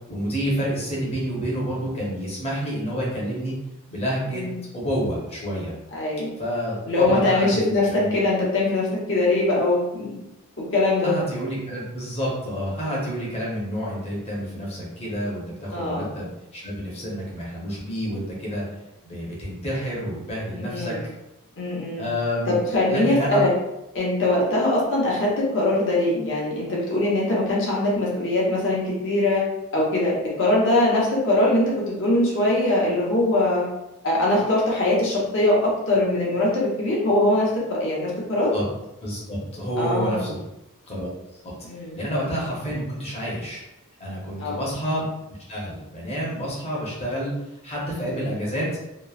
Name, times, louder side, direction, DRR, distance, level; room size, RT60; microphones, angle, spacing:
voice 1, 0.1-3.5 3.9-4.4 4.7-5.7 6.4-8.2 11.0-18.6 19.0-20.9 22.0-22.6 22.9-23.4 38.5-38.6 39.0-40.4 40.9-41.1 41.4-41.5 41.9-43.6 44.0-45.1 45.5-47.3 47.6-48.7, equal, 30° left, -5 dB, 0.8 m, -29 dB
voice 2, 5.9-6.4 6.9-10.2 10.6-11.2 15.7-16.1 20.6-21.0 21.6-22.1 22.5-23.5 23.9-29.4 29.7-33.6 34.0-38.5 39.8-40.3 41.6-42.0 44.4-44.7 47.9-48.3, left 1 dB, 55° left, -5 dB, 0.9 m, -22 dB
3.0 x 2.0 x 2.4 m, 0.90 s
head